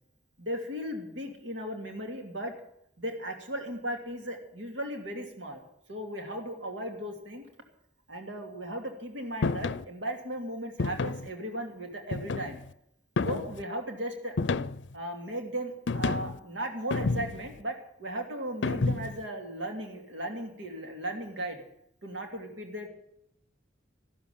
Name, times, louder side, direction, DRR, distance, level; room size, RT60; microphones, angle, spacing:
voice 1, 0.4-2.5 3.0-5.6 5.9-7.4 8.1-12.6 13.2-14.4 14.9-21.6 22.0-22.9, right 1 dB, 85° right, 4 dB, 3.0 m, -36 dB
sound 1, 9.4-9.9 10.8-11.3 12.1-12.7 13.2-13.6 14.4-14.9 15.9-16.4 16.9-17.5 18.6-19.2, left 3 dB, 75° left, 0.5 m, -30 dB
14.0 x 13.0 x 7.2 m, 0.72 s
head